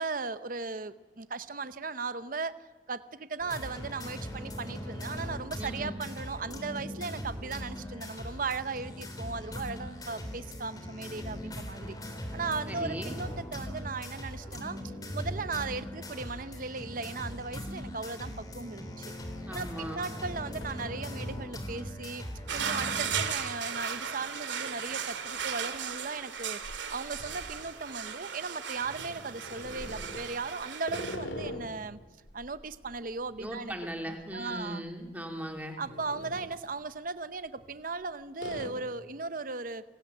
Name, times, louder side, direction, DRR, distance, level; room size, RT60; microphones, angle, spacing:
voice 1, 0.0-2.6 2.9-12.0 12.3-19.1 19.5-32.0 32.3-33.7 34.1-34.8 35.8-39.8, right 4 dB, 45° right, 13 dB, 0.8 m, -37 dB
sound 1, 3.4-23.3, equal, 20° left, 3.4 m, -40 dB
voice 2, 5.6-6.0 12.7-13.1 19.5-20.0 33.4-35.8, equal, 10° right, 3 dB, 3.1 m, -38 dB
sound 2, 19.0-19.1 19.6-20.0 20.3-21.3 21.7-21.8 22.7-23.0 23.6-23.8 24.1-24.2 25.1-28.2 28.8-31.9 32.3-34.6 34.9-35.1 35.6-36.6 37.5-38.0 38.4-38.7, left 1 dB, 80° left, 3.7 m, -44 dB
sound 3, 22.5-31.2, right 7 dB, 75° right, 2.3 m, -36 dB
28.0 x 20.0 x 8.5 m, 1.2 s
head